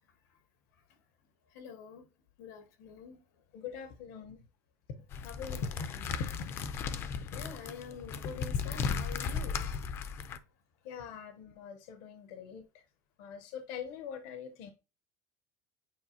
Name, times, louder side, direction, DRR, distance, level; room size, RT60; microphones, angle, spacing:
voice 1, 1.5-2.0 2.4-3.2 5.3-5.4 7.3-9.7, left 6 dB, 90° left, 2.0 m, -46 dB
voice 2, 3.5-4.4 5.2-5.7 6.2-6.5 7.2-7.3 10.8-12.8 13.2-14.7, left 6 dB, 55° left, 0.8 m, -43 dB
sound 1, 5.1-10.4, left 5 dB, 25° left, 0.5 m, -36 dB
8.6 x 4.7 x 2.8 m
cardioid pair, 180°, 9 cm